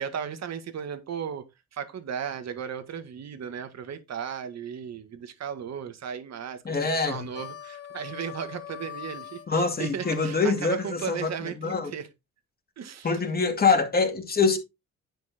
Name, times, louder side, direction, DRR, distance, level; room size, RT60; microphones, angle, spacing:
voice 1, 0.0-1.5 1.7-6.8 7.1-12.1 12.8-13.1, right 8 dB, 60° right, 1.9 m, -35 dB
voice 2, 6.6-7.2 9.5-11.9 13.0-14.6, left 4 dB, 30° left, 2.6 m, -25 dB
Harmonica, 7.1-11.4, left 9 dB, 50° left, 2.8 m, -43 dB
10.5 x 4.5 x 4.4 m
cardioid pair, 90°, 30 cm